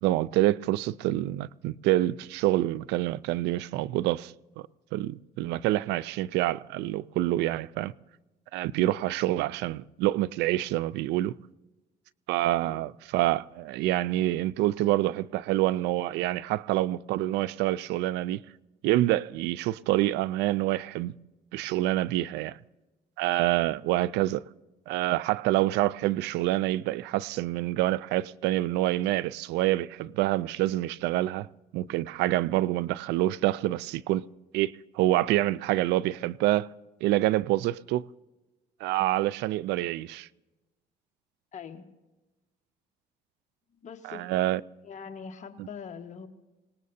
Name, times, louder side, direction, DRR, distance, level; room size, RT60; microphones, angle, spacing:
voice 1, 0.0-4.3 4.9-7.9 8.5-11.4 12.3-18.4 18.8-21.1 21.5-22.6 23.2-24.4 24.9-31.5 31.7-34.3 34.5-36.7 37.0-38.0 38.8-40.3 44.1-44.6 45.6-45.7, right 15 dB, 90° right, 0.4 m, -27 dB
voice 2, 41.5-41.9 43.8-44.3 44.8-46.3, left 6 dB, 45° left, 1.4 m, -42 dB
26.0 x 19.0 x 2.7 m
cardioid pair, 110°, 17 cm